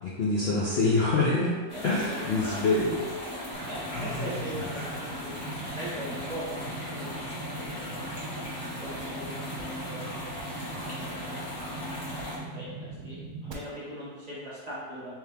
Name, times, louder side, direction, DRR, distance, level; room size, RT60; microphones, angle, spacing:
voice 1, 0.0-1.5 1.8-3.0 3.6-4.7, left 3 dB, 75° left, -6 dB, 0.5 m, -27 dB
sound 1, 1.7-12.4, left 1 dB, 25° left, 0.6 m, -38 dB
voice 2, 1.7-2.6 3.7-6.5 6.8-8.0 8.6-10.5 10.8-13.2 13.4-15.2, equal, 25° right, -10 dB, 1.2 m, -41 dB
sound 2, 3.5-13.5, right 3 dB, 75° right, 1.1 m, -41 dB
3.5 x 2.9 x 3.4 m, 1.5 s
omnidirectional pair, 1.8 m